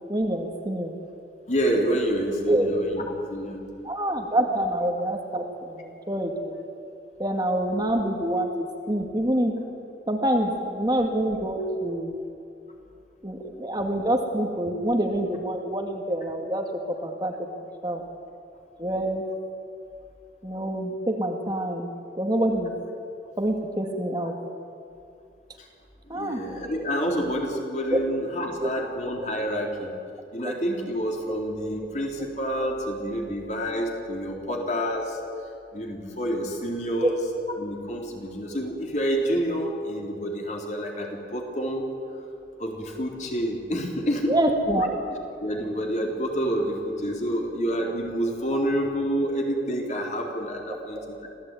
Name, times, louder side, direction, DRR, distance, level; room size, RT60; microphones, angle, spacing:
voice 1, 0.1-0.9 2.5-2.7 3.8-6.6 7.2-9.5 10.1-12.2 13.2-16.7 17.0-18.0 18.8-19.2 20.4-21.9 22.2-22.7 23.4-24.3 26.1-26.4 27.9-28.0 28.6-28.9 30.4-30.5 37.0-37.1 44.3-45.0 51.0-51.1, right 1 dB, 25° right, 3 dB, 2.0 m, -26 dB
voice 2, 1.5-3.6 25.6-25.7 26.1-29.9 30.3-35.2 35.7-37.2 37.6-41.8 42.6-44.4 45.4-51.3, equal, 40° left, 1 dB, 4.0 m, -28 dB
26.5 x 17.0 x 9.3 m, 2.5 s
head